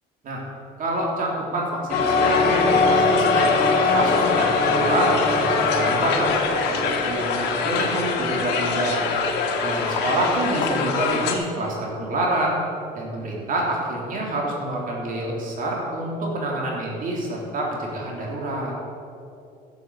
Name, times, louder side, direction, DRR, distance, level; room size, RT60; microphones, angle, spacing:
voice 1, 0.8-3.5 3.9-6.4 6.7-9.0 9.6-12.6 12.9-18.7, right 1 dB, 55° right, -2 dB, 3.4 m, -27 dB
Crowd, 1.9-11.3, left 4 dB, 85° left, 1.6 m, -21 dB
12.5 x 7.0 x 7.0 m, 2.6 s
cardioid pair, 110°, 17 cm